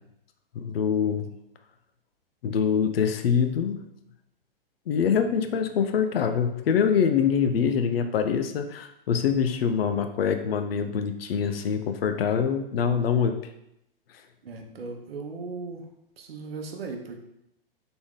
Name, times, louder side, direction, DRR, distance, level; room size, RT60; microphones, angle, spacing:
voice 1, 0.5-1.3 2.4-3.9 4.9-13.3, left 7 dB, 80° left, 8 dB, 0.6 m, -24 dB
voice 2, 14.4-15.9 16.2-17.2, right 4 dB, 85° right, 3 dB, 0.9 m, -37 dB
3.9 x 3.6 x 3.6 m, 0.82 s
hypercardioid pair, 130°, 29 cm